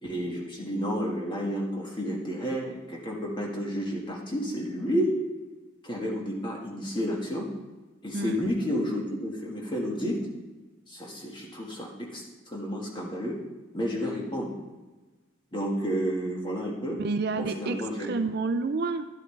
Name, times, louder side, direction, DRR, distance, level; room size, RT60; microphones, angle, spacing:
voice 1, 0.0-5.2 5.8-7.5 8.0-10.2 10.9-13.4 13.7-14.5 15.5-17.0 17.3-18.1, equal, 25° left, -2 dB, 1.7 m, -31 dB
voice 2, 17.0-19.1, right 3 dB, 50° right, 10 dB, 0.4 m, -29 dB
11.0 x 10.5 x 3.3 m, 1.2 s
head